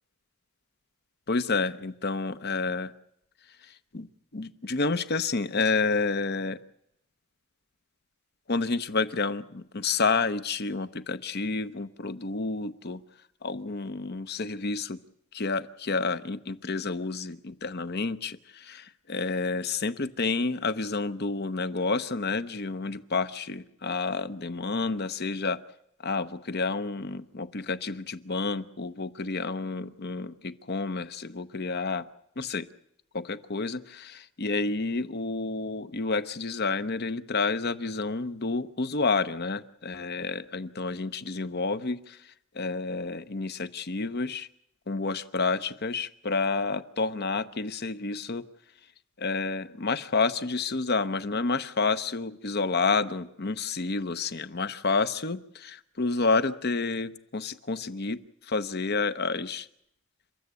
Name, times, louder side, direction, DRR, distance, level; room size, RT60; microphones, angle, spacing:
voice 1, 1.3-2.9 3.9-6.6 8.5-13.0 13.4-15.0 15.3-25.6 26.0-32.0 32.4-32.7 33.1-42.2 42.5-44.5 44.9-48.4 49.2-58.2 58.4-59.7, left 4 dB, 45° left, 13 dB, 0.9 m, -29 dB
29.5 x 14.0 x 8.3 m, 0.76 s
head